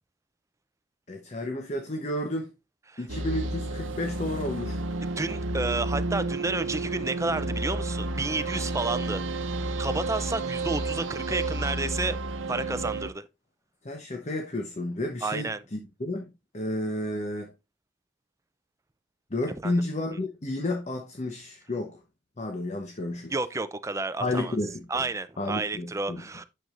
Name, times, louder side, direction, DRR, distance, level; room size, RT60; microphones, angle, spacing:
voice 1, 1.1-2.5 3.0-4.8 13.8-17.5 19.3-22.0 22.4-23.3 24.2-25.0 25.4-26.2, left 1 dB, 35° left, 0.9 m, -31 dB
sound 1, 3.1-13.1, right 2 dB, 85° right, 0.8 m, -31 dB
voice 2, 5.2-9.2 9.8-12.2 12.5-13.3 15.2-15.6 19.6-19.8 23.3-24.6 24.9-26.4, right 3 dB, 15° right, 0.5 m, -31 dB
9.3 x 6.8 x 2.5 m
head